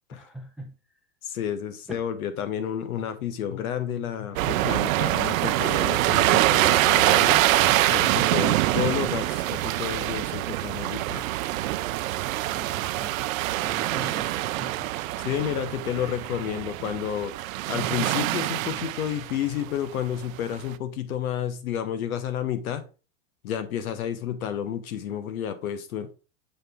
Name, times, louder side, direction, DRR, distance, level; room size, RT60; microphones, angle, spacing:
voice 1, 0.1-0.7 1.9-2.0 12.5-13.2 13.6-14.3, right 1 dB, ahead, 4 dB, 0.5 m, -41 dB
voice 2, 1.2-11.2 15.2-22.8 23.4-26.1, left 9 dB, 90° left, 11 dB, 1.1 m, -31 dB
sound 1, 4.4-19.7 20.4-20.6, right 16 dB, 70° right, 0.5 m, -24 dB
6.7 x 3.9 x 3.5 m, 0.34 s
supercardioid pair, 150°, 42 cm